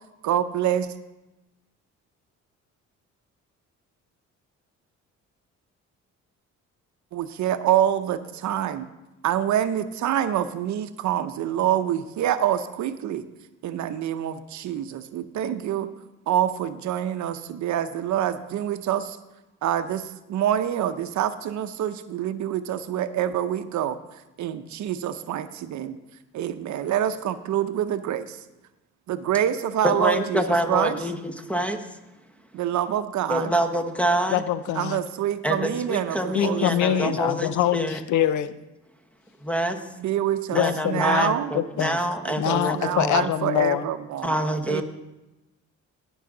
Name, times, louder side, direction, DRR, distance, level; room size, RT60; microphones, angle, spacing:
voice 1, 0.2-0.9 7.1-8.9 9.2-13.3 13.6-15.9 16.3-19.2 19.6-24.0 24.4-26.0 26.3-28.4 29.1-31.0 32.5-33.5 34.7-37.1 40.0-41.5 42.2-44.3 44.7-44.8, right 10 dB, 70° right, 11 dB, 0.7 m, -26 dB
voice 2, 29.8-31.9 33.3-34.4 35.4-38.0 39.4-39.8 40.5-43.3 44.2-44.8, equal, 5° left, 6 dB, 1.2 m, -26 dB
voice 3, 34.3-35.0 36.3-38.5 40.5-42.0 42.4-43.8, left 11 dB, 75° left, 15 dB, 0.6 m, -24 dB
17.0 x 6.4 x 3.8 m, 1.0 s
cardioid pair, 90°, 30 cm